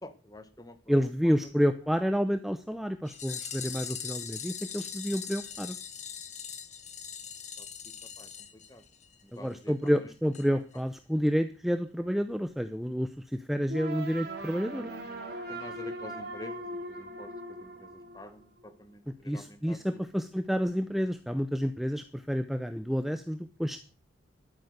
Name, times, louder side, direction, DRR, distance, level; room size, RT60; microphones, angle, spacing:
voice 1, 0.0-0.9 7.6-7.7 8.2-8.3 8.7-8.8 9.2-9.7 15.5-17.3 17.6-20.0, left 1 dB, 20° left, 10 dB, 1.3 m, -48 dB
voice 2, 0.9-5.8 9.3-14.9 19.3-23.8, equal, ahead, 9 dB, 0.6 m, -29 dB
sound 1, 3.1-9.2 9.5-9.6 9.9-10.0 10.3-10.5 10.7-10.8, left 8 dB, 35° left, 1.5 m, -41 dB
sound 2, 13.7-18.7, right 1 dB, 50° right, 3.0 m, -40 dB
12.0 x 9.1 x 6.6 m, 0.35 s
head